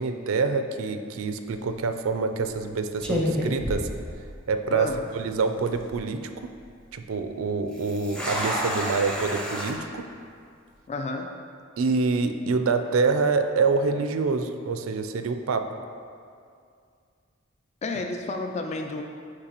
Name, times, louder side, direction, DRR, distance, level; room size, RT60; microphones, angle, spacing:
voice 1, 0.0-3.9 4.5-6.5 6.9-10.1 11.8-15.7, right 4 dB, 80° right, 8 dB, 0.4 m, -26 dB
sound 1, 1.5-1.8 2.5-2.7 3.0-4.6 4.9-5.0 5.6-6.0 7.7-9.7, equal, 5° left, 0.7 m, -30 dB
voice 2, 10.9-11.3 17.8-19.0, left 3 dB, 30° left, 4 dB, 0.3 m, -31 dB
8.6 x 4.7 x 3.0 m, 2.3 s
head